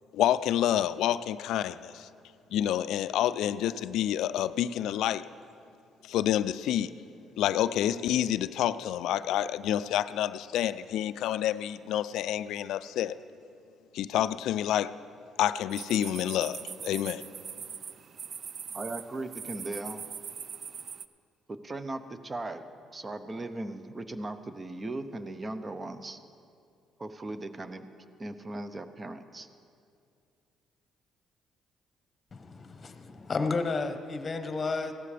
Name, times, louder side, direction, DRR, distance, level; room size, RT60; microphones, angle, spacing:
voice 1, 0.1-2.1 2.5-5.2 6.1-6.9 7.4-13.1 13.9-14.9 15.4-17.2, left 11 dB, 80° left, 15 dB, 0.3 m, -28 dB
sound 1, 15.7-21.1, right 7 dB, 55° right, 0.4 m, -41 dB
voice 2, 18.7-20.0 21.5-22.6 22.9-26.2 27.0-27.9 28.2-29.5, right 2 dB, 25° right, 10 dB, 0.7 m, -38 dB
voice 3, 32.3-34.9, left 4 dB, 35° left, 7 dB, 1.0 m, -32 dB
16.5 x 12.5 x 3.4 m, 2.4 s
cardioid pair, 85°, 0 cm